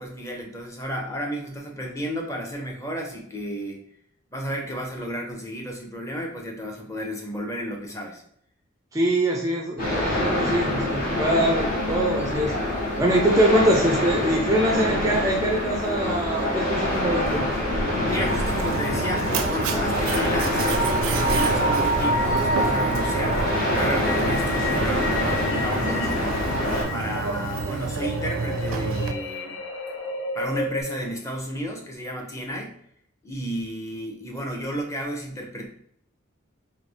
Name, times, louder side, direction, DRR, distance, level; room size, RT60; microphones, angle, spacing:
voice 1, 0.0-3.8 4.3-8.2 18.1-23.4 23.7-26.4 26.9-29.6 30.3-32.7 33.2-35.7, equal, 15° left, 1 dB, 0.7 m, -32 dB
voice 2, 8.9-12.5 13.0-17.5, right 1 dB, 15° right, 0 dB, 0.4 m, -23 dB
sound 1, 9.8-26.8, left 1 dB, 45° left, 1.2 m, -25 dB
sound 2, 18.3-30.8, equal, 65° left, 0.7 m, -30 dB
Mechanisms, 18.3-29.1, right 4 dB, 85° right, 0.4 m, -29 dB
3.2 x 2.7 x 4.1 m, 0.66 s
head